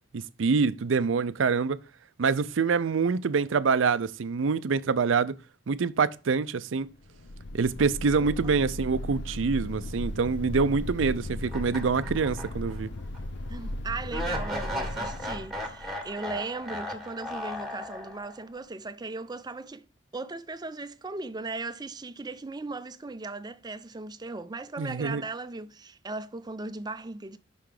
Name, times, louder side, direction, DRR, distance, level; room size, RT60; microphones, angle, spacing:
voice 1, 0.1-1.8 2.2-5.3 5.7-6.9 7.5-12.9 24.8-25.2, right 5 dB, 90° right, 0.5 m, -26 dB
sound 1, 7.0-16.3, left 1 dB, 65° left, 0.6 m, -36 dB
voice 2, 8.2-8.6 13.5-19.9 20.1-27.4, right 3 dB, 20° right, 0.5 m, -37 dB
sound 2, 11.5-12.8 13.1-13.2 14.1-18.4, equal, ahead, 1.7 m, -36 dB
6.0 x 5.8 x 4.8 m
head